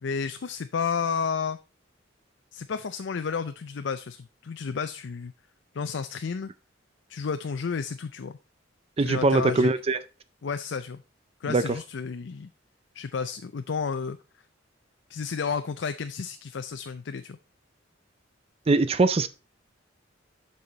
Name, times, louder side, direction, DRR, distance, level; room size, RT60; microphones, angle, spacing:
voice 1, 0.0-1.6 2.5-5.3 5.7-6.5 7.1-8.4 9.0-9.7 10.4-11.0 11.4-12.5 12.9-14.2 15.1-17.4, left 5 dB, 65° left, 0.5 m, -31 dB
voice 2, 9.0-10.0 11.5-11.6 18.7-19.3, right 3 dB, 30° right, 0.4 m, -22 dB
7.7 x 5.6 x 3.9 m
head